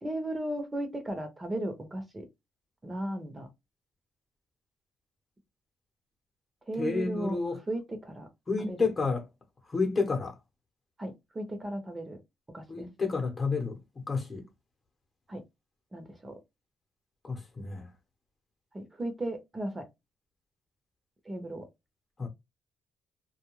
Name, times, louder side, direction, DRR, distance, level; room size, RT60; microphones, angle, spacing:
voice 1, 0.0-2.3 2.8-3.5 6.7-7.4 7.7-8.3 8.7-8.9 11.0-12.2 12.5-12.9 15.3-15.4 15.9-16.3 18.7-19.9 21.3-21.6, right 1 dB, 20° right, 0.8 m, -35 dB
voice 2, 6.8-7.6 8.5-9.2 9.7-10.3 12.7-14.5 17.2-17.9 22.2-22.3, left 4 dB, 35° left, 0.9 m, -30 dB
2.3 x 2.2 x 3.0 m
cardioid pair, 90°, 0 cm